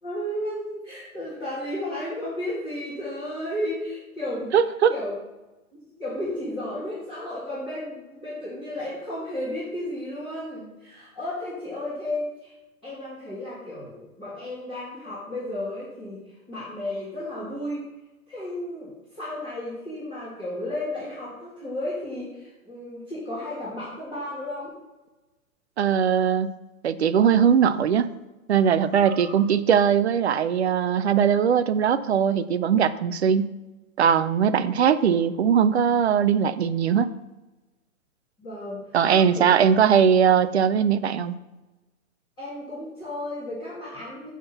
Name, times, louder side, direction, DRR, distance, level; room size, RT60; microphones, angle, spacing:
voice 1, 0.0-4.5 4.9-5.2 5.7-12.5 12.8-16.2 16.5-17.8 18.3-24.7 28.9-29.4 38.4-39.5 42.4-44.3, left 1 dB, 10° left, -12 dB, 2.2 m, -33 dB
voice 2, 4.5-4.9 25.8-26.5 26.8-28.1 28.5-33.5 34.0-37.1 38.9-41.3, right 7 dB, 50° right, 13 dB, 0.5 m, -20 dB
9.6 x 3.6 x 5.7 m, 1.1 s
hypercardioid pair, 175°, 43 cm